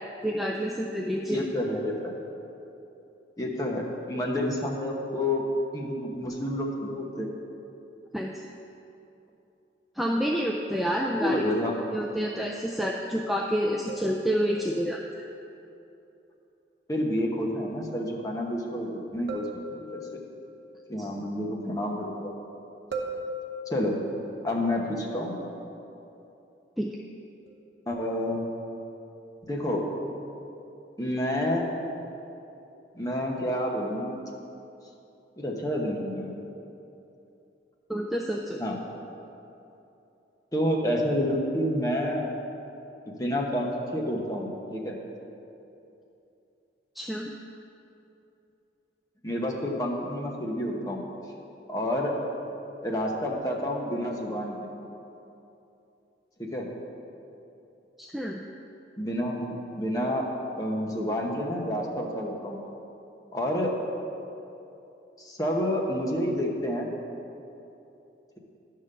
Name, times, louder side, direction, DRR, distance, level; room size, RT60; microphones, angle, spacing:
voice 1, 0.2-1.5 8.1-8.5 10.0-11.5 11.9-15.0 21.0-21.1 26.8-26.9 37.9-38.6 47.0-47.3 58.0-58.4, equal, ahead, -1 dB, 0.3 m, -28 dB
voice 2, 1.3-2.1 3.4-5.4 5.7-7.3 11.2-11.7 16.9-19.5 19.9-20.0 20.9-22.4 23.7-24.0 24.4-25.3 27.9-28.4 29.4-29.9 31.0-31.7 32.9-34.2 35.4-36.5 38.6-38.8 40.5-42.2 43.1-45.0 49.2-51.0 51.7-52.1 52.8-54.7 56.4-56.7 59.0-60.3 60.6-62.6 63.3-63.7 65.2-66.9, left 1 dB, 20° left, -1 dB, 0.9 m, -29 dB
sound 1, 13.9-15.0 19.3-20.5 22.9-24.2 27.5-27.7, right 1 dB, 65° right, 0.9 m, -38 dB
11.0 x 3.8 x 6.6 m, 2.8 s
head